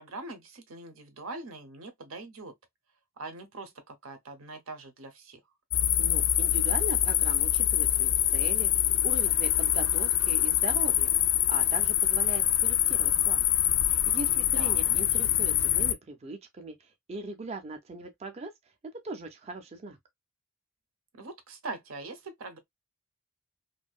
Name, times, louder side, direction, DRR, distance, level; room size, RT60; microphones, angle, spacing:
voice 1, 0.0-2.5 3.2-5.4 14.4-15.0 21.1-22.6, right 3 dB, 85° right, 0.7 m, -42 dB
sound 1, 5.7-15.9, left 12 dB, 75° left, 0.3 m, -25 dB
voice 2, 6.0-11.1 11.5-13.5 13.8-18.5 19.0-20.0, right 3 dB, 30° right, 0.4 m, -40 dB
2.6 x 2.2 x 2.3 m
head